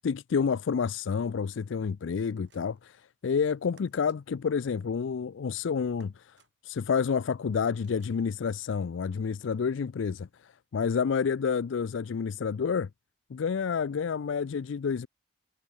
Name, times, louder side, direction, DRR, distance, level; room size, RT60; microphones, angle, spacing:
voice 1, 0.0-6.4 6.6-12.9 13.3-15.1, left 6 dB, 75° left, 0.4 m, -29 dB
sound 1, 2.3-2.9 3.8-4.2 6.0-6.5 7.8-8.2, right 4 dB, 60° right, 7.9 m, -62 dB
head